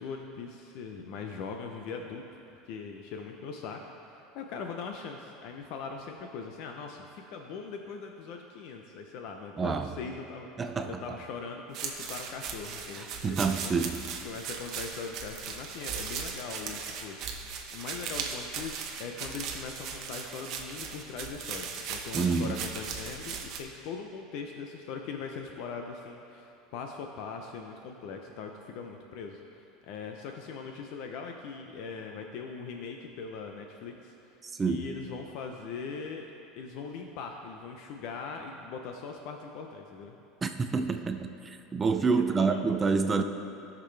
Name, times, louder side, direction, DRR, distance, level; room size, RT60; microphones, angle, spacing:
voice 1, 0.0-2.2 2.7-13.4 14.2-17.4 17.7-34.3 34.7-36.3 36.6-40.2 42.2-42.6, left 5 dB, 50° left, 3 dB, 0.6 m, -41 dB
voice 2, 9.6-9.9 10.6-11.0 13.0-14.0 22.1-22.6 34.6-34.9 40.4-43.2, right 4 dB, 15° right, 7 dB, 0.4 m, -28 dB
sound 1, 11.7-23.6, right 6 dB, 40° right, 0.8 m, -38 dB
17.5 x 6.0 x 3.3 m, 2.7 s
cardioid pair, 175°, 0 cm